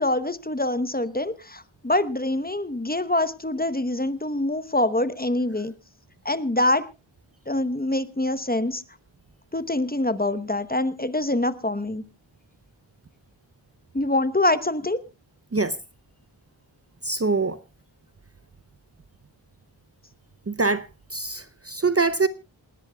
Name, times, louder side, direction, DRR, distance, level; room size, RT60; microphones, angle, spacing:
voice 1, 0.0-5.7 6.2-6.9 7.5-8.8 9.5-12.0 13.9-15.0, left 1 dB, 20° left, 1.0 m, -25 dB
voice 2, 17.0-17.6 20.5-22.3, right 3 dB, 30° right, 0.7 m, -24 dB
28.0 x 10.5 x 2.3 m
wide cardioid pair, 60°, 46 cm